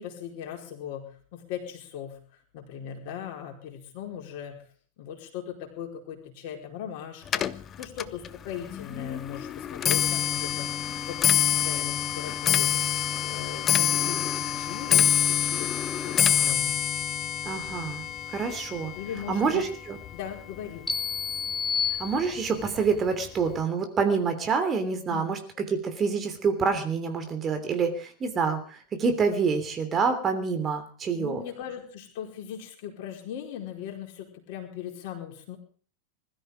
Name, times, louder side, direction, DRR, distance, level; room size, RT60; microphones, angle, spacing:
voice 1, 0.0-2.2 2.5-4.6 5.0-12.8 13.2-16.7 18.9-19.7 20.1-20.9 25.1-25.2 31.2-35.6, left 9 dB, 45° left, 2 dB, 4.8 m, -39 dB
Clock, 7.3-20.6 20.9-21.4 22.2-22.3 22.6-23.0 23.3-23.4, left 10 dB, 25° left, 0.8 m, -26 dB
voice 2, 17.4-18.9 19.3-20.0 22.0-25.4 25.8-31.4, right 5 dB, 25° right, 7 dB, 3.1 m, -27 dB
sound 1, 20.9-22.7, left 6 dB, 10° left, 2.6 m, -30 dB
21.5 x 13.5 x 5.1 m, 0.44 s
figure-of-eight pair, 90°, 0 cm